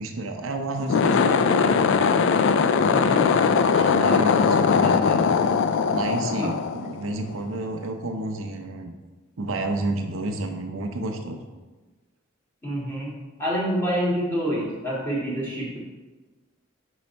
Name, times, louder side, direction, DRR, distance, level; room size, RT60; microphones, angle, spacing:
voice 1, 0.0-1.9 3.5-5.3 5.9-8.9 9.4-11.4, right 2 dB, 75° right, 4 dB, 0.6 m, -30 dB
sound 1, 0.8-7.3, left 5 dB, 60° left, 0.3 m, -20 dB
voice 2, 2.9-3.3 6.4-6.5 12.6-13.1 13.4-15.8, equal, 10° left, -7 dB, 1.8 m, -27 dB
5.1 x 4.7 x 4.4 m, 1.2 s
head